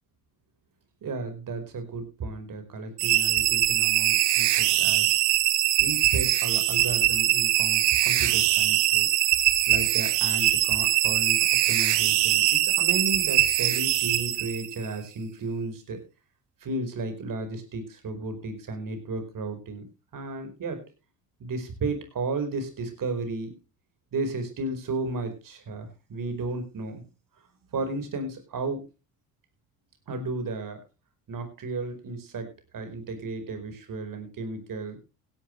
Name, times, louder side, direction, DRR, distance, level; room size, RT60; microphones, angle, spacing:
voice 1, 1.0-5.2 5.8-9.1 9.7-16.0 16.6-19.9 20.1-20.8 21.4-23.5 24.1-27.1 27.7-28.8 30.1-30.8 31.3-32.5 32.7-35.0, right 3 dB, 50° right, 7 dB, 5.1 m, -33 dB
sound 1, 3.0-14.9, right 14 dB, 70° right, 1.7 m, -22 dB
16.5 x 11.0 x 3.4 m, 0.29 s
hypercardioid pair, 65°, 43 cm